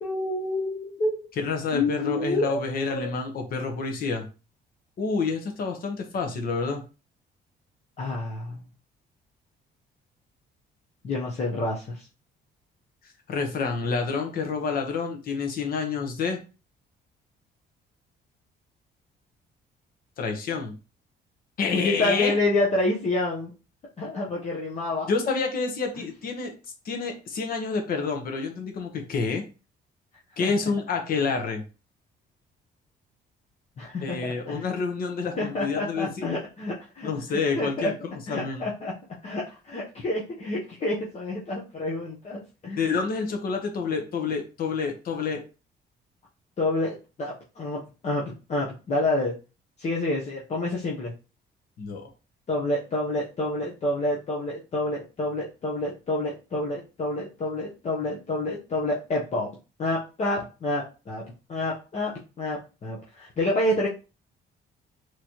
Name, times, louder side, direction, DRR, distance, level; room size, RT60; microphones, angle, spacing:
voice 1, 0.0-1.2 1.7-3.1 8.0-8.6 11.0-12.0 21.7-23.5 24.0-25.1 30.4-30.5 33.8-34.6 35.4-37.1 37.6-37.9 38.3-38.9 39.2-42.8 46.6-48.2 48.5-49.4 49.8-51.1 52.5-59.5 59.8-61.2 61.5-62.1 62.4-63.9, left 2 dB, 40° left, -4 dB, 0.9 m, -28 dB
voice 2, 1.4-4.2 5.0-6.8 13.3-16.4 20.2-20.7 21.6-22.3 25.1-26.5 26.8-29.4 30.4-31.6 34.0-36.3 37.0-38.7 42.8-45.4 51.8-52.1, left 4 dB, 55° left, 4 dB, 1.1 m, -28 dB
4.0 x 3.1 x 3.0 m, 0.32 s
cardioid pair, 150°, 18 cm